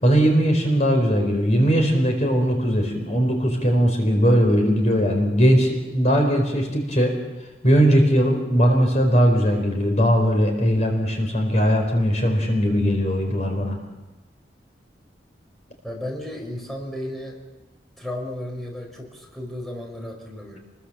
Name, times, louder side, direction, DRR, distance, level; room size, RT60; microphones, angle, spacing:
voice 1, 0.0-7.1 7.6-13.8, equal, 40° left, 3 dB, 4.4 m, -19 dB
voice 2, 15.8-17.4 18.0-20.6, left 1 dB, ahead, -1 dB, 5.4 m, -34 dB
29.0 x 22.0 x 7.4 m, 1.1 s
head